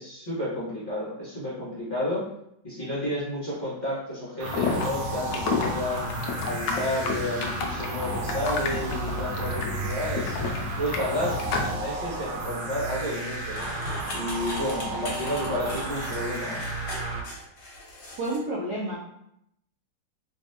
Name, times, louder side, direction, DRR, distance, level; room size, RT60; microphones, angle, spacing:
voice 1, 0.0-2.2 2.6-6.1 6.4-10.4 10.8-13.6 14.1-16.6, left 1 dB, 25° left, -11 dB, 1.3 m, -31 dB
sound 1, 4.4-11.8, left 4 dB, 75° left, 1.0 m, -31 dB
sound 2, 4.4-17.2, right 3 dB, 85° right, 1.5 m, -33 dB
sound 3, 13.5-18.4, left 1 dB, 50° left, 1.1 m, -38 dB
voice 2, 18.1-19.0, right 1 dB, 65° right, -6 dB, 1.0 m, -29 dB
3.3 x 3.2 x 2.9 m, 0.76 s
omnidirectional pair, 2.4 m